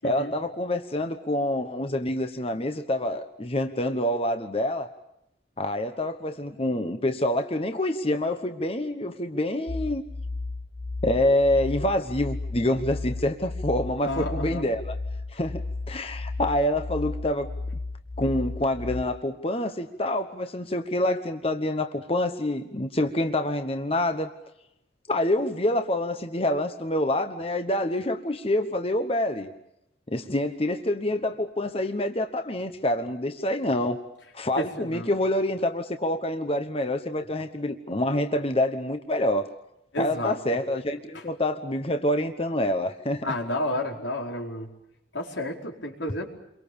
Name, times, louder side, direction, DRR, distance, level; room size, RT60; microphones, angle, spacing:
voice 1, 0.0-4.9 5.6-10.0 11.0-15.0 15.3-15.6 15.9-17.5 18.2-24.3 25.1-29.5 30.1-34.0 34.3-39.5 40.0-43.3, left 1 dB, 30° left, 7 dB, 1.2 m, -26 dB
sound 1, 9.7-19.0, left 3 dB, 65° left, 0.9 m, -34 dB
voice 2, 14.0-14.7 34.6-35.1 39.9-40.4 41.1-41.2 43.2-44.7 45.1-46.2, left 1 dB, 90° left, 1 dB, 4.7 m, -31 dB
29.0 x 23.5 x 7.0 m, 0.84 s
head